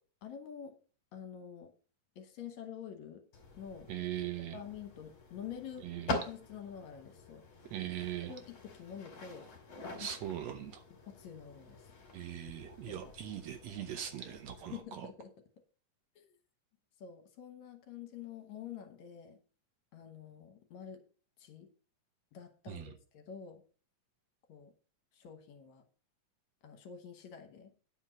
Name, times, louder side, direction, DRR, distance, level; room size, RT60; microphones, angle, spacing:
voice 1, 0.2-0.8 1.1-1.7 2.2-3.2 3.5-3.9 4.5-5.9 6.3-7.5 8.2-9.5 9.8-10.3 11.0-11.9 12.9-13.1 14.7-15.3 16.2-16.3 17.0-19.4 19.9-21.0 21.4-21.7 22.3-23.6 24.5-24.7 25.1-25.8 26.6-27.7, left 8 dB, 70° left, 6 dB, 2.4 m, -48 dB
sound 1, 3.3-14.8, left 2 dB, 45° left, 2.9 m, -46 dB
voice 2, 3.9-4.6 5.8-6.2 7.7-8.4 10.0-10.8 12.1-15.1 22.7-22.9, right 11 dB, 70° right, 8 dB, 1.9 m, -40 dB
9.8 x 4.4 x 6.1 m, 0.40 s
omnidirectional pair, 3.5 m